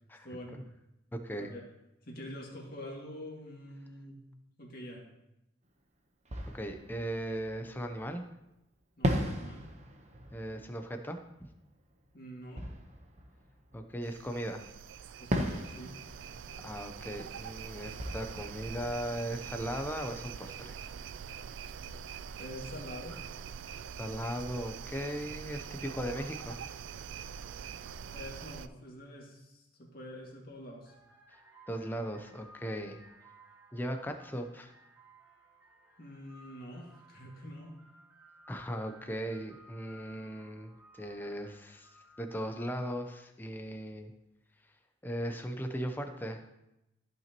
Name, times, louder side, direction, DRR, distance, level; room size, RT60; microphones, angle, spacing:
voice 1, 0.2-0.7 1.4-1.6 2.0-4.2 4.6-5.0 9.0-9.7 12.1-12.7 15.2-16.0 22.4-23.2 28.1-30.9 36.0-37.8, equal, 50° left, -2 dB, 2.1 m, -46 dB
voice 2, 1.1-1.5 6.5-8.2 10.3-11.2 13.7-14.7 16.6-20.8 24.0-26.6 31.3-31.4 31.7-33.0 33.7-34.7 38.5-41.9 42.2-44.1 45.0-46.4, equal, 10° left, 5 dB, 0.6 m, -38 dB
Fireworks, 5.6-5.7 6.2-8.2 9.0-14.4 15.3-20.0, equal, 35° right, 0.9 m, -39 dB
sound 1, 14.0-28.7, right 7 dB, 75° right, 0.3 m, -44 dB
sound 2, 30.3-30.4 30.8-42.9, right 1 dB, 15° right, 1.8 m, -59 dB
14.0 x 5.9 x 3.0 m, 0.90 s
head